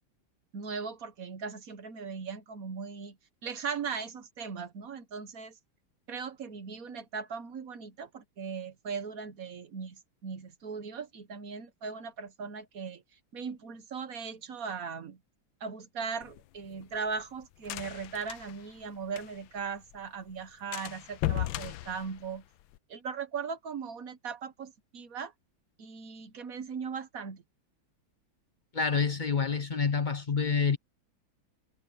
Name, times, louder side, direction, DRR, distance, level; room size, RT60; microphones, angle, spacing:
voice 1, 0.5-3.2 3.4-5.6 6.1-13.0 13.3-15.2 15.6-22.4 22.9-25.3 25.8-27.4, right 5 dB, 50° right, 1.4 m, -38 dB
sound 1, 16.2-19.6 19.9-20.0 20.3-20.4 20.7-22.8, left 16 dB, 85° left, 1.4 m, -36 dB
voice 2, 28.7-30.8, left 5 dB, 45° left, 0.6 m, -27 dB
omnidirectional pair, 2.1 m